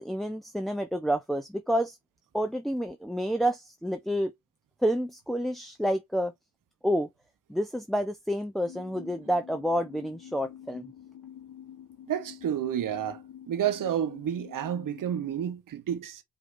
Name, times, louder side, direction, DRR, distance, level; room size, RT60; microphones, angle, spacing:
voice 1, 0.0-2.0 2.3-4.3 4.8-6.3 6.8-7.1 7.5-10.9, equal, ahead, 0.6 m, -29 dB
sound 1, 8.6-15.5, left 10 dB, 75° left, 1.2 m, -48 dB
voice 2, 12.1-13.2 13.5-16.2, right 9 dB, 55° right, 1.0 m, -30 dB
5.0 x 2.8 x 2.6 m
supercardioid pair, 65°, 38 cm